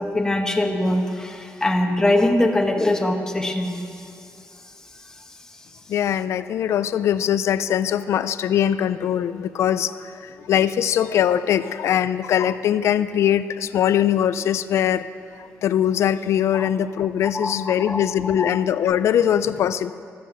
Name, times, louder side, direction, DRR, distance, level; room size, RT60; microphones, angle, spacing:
voice 1, 0.0-3.8 16.5-16.6 17.3-18.5, left 1 dB, 10° left, 3 dB, 1.2 m, -22 dB
voice 2, 5.9-15.0 15.4-19.9, left 10 dB, 60° left, 14 dB, 0.5 m, -21 dB
13.0 x 13.0 x 7.8 m, 2.5 s
cardioid pair, 165°, 5 cm